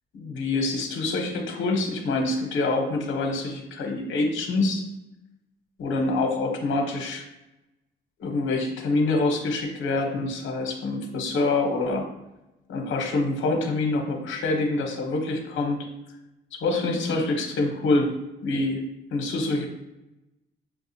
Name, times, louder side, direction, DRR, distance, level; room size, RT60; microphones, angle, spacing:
voice 1, 0.1-4.8 5.8-7.2 8.2-12.1 12.7-15.8 16.6-18.1 18.4-18.8 19.1-19.7, left 2 dB, 75° left, 2 dB, 0.9 m, -26 dB
6.2 x 2.4 x 2.7 m, 0.94 s
cardioid pair, 90°, 20 cm